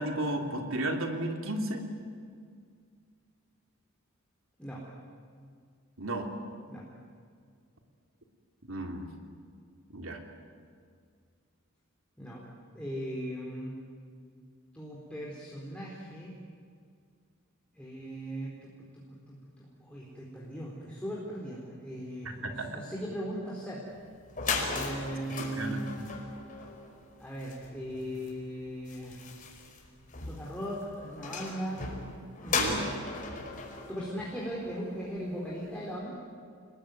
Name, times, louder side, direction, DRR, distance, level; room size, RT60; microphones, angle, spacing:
voice 1, 0.0-1.8 6.0-6.3 8.7-9.1 9.9-10.2 22.4-22.8 25.3-26.1 32.5-32.9, right 1 dB, 65° right, 3 dB, 3.3 m, -34 dB
voice 2, 12.7-13.8 14.7-16.4 17.7-23.9 24.7-25.9 27.2-29.3 30.3-31.9 32.4-32.6 33.9-36.2, equal, 5° left, -5 dB, 4.1 m, -38 dB
sound 1, 24.0-24.1 24.3-35.0, left 4 dB, 40° left, 5.2 m, -37 dB
29.5 x 21.0 x 9.4 m, 2.1 s
head